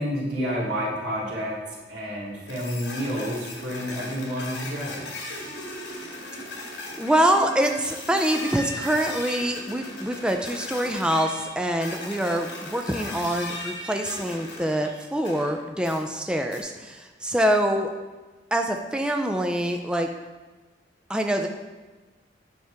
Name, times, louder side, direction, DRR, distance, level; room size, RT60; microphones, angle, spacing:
voice 1, 0.0-5.0, equal, 90° right, -6 dB, 2.7 m, -30 dB
sound 1, 2.5-15.5 15.8-16.0 16.5-16.6, left 1 dB, 75° left, 2.0 m, -37 dB
voice 2, 7.0-17.9 18.5-20.1 21.1-21.5, right 1 dB, 5° right, 4 dB, 0.3 m, -25 dB
9.2 x 5.8 x 3.4 m, 1.3 s
head